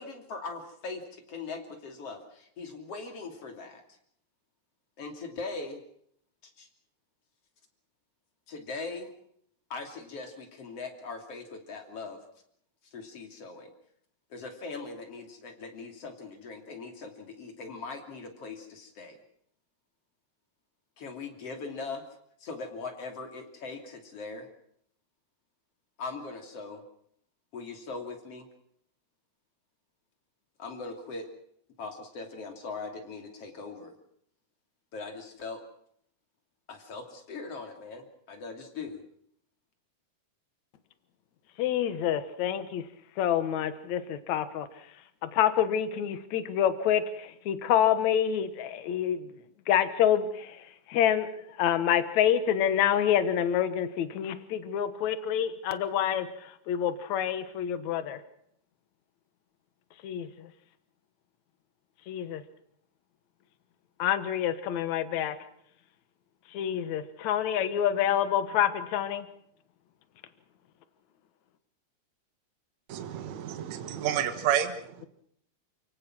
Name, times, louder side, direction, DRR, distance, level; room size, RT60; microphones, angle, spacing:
voice 1, 0.0-3.8 5.0-5.8 6.6-6.7 8.5-9.1 9.7-12.2 12.9-13.7 14.3-19.2 21.0-22.0 22.4-24.5 26.0-26.8 27.5-28.5 30.6-31.3 31.8-33.9 34.9-35.6 36.7-39.0, left 4 dB, 50° left, 5 dB, 3.8 m, -40 dB
voice 2, 41.6-42.8 43.2-44.7 45.2-49.3 49.7-50.6 50.9-51.3 51.6-56.3 56.7-58.2 60.0-60.5 62.1-62.4 64.0-65.4 66.5-69.3, left 10 dB, 70° left, 12 dB, 2.6 m, -27 dB
voice 3, 72.9-75.1, right 10 dB, 65° right, 8 dB, 2.6 m, -30 dB
29.0 x 17.5 x 6.2 m, 0.69 s
omnidirectional pair, 3.5 m